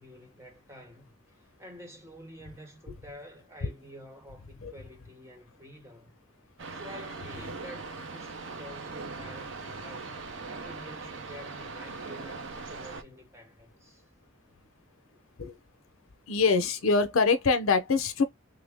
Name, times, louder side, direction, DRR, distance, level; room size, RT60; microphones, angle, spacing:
voice 1, 0.0-6.2 6.7-10.2 10.6-14.0, equal, 15° right, 0.9 m, -49 dB
sound 1, 6.6-13.0, right 3 dB, 60° right, 0.7 m, -40 dB
voice 2, 16.3-18.2, left 4 dB, 80° left, 0.7 m, -24 dB
3.5 x 2.0 x 3.4 m
head